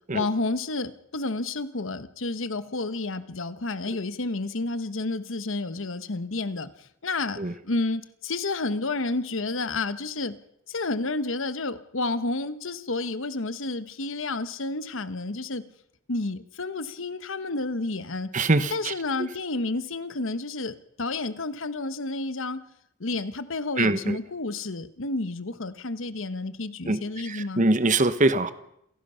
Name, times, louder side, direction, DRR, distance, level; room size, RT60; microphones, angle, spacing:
voice 1, 0.1-7.4 7.6-10.4 10.7-15.7 16.1-18.3 18.7-22.6 23.0-27.6, left 2 dB, 65° left, 13 dB, 1.2 m, -30 dB
voice 2, 18.3-18.9 23.8-24.2 26.9-27.0 27.3-28.5, right 2 dB, 35° right, 12 dB, 1.1 m, -23 dB
27.5 x 17.5 x 5.7 m, 0.74 s
head